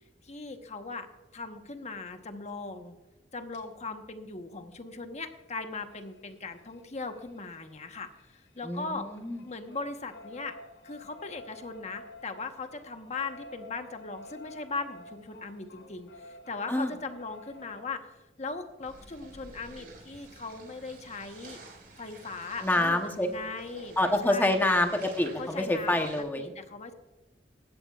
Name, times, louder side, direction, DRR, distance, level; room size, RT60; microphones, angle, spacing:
voice 1, 0.2-1.1 1.3-3.0 3.3-9.1 9.4-10.5 10.8-18.1 18.4-21.6 22.0-24.8 25.4-26.0 26.4-26.9, left 3 dB, 40° left, 6 dB, 1.1 m, -39 dB
sound 1, 3.5-3.6 5.3-8.8 9.1-17.8 19.5-19.6 19.9-20.0 20.3-20.4, left 2 dB, 80° left, 4.8 m, -51 dB
voice 2, 8.6-9.4 16.7-16.9 22.6-23.3 24.0-26.5, left 1 dB, 10° left, 4 dB, 0.9 m, -27 dB
sound 2, 18.8-26.2, right 2 dB, 60° right, 4.8 m, -50 dB
16.5 x 13.5 x 2.4 m, 1.1 s
head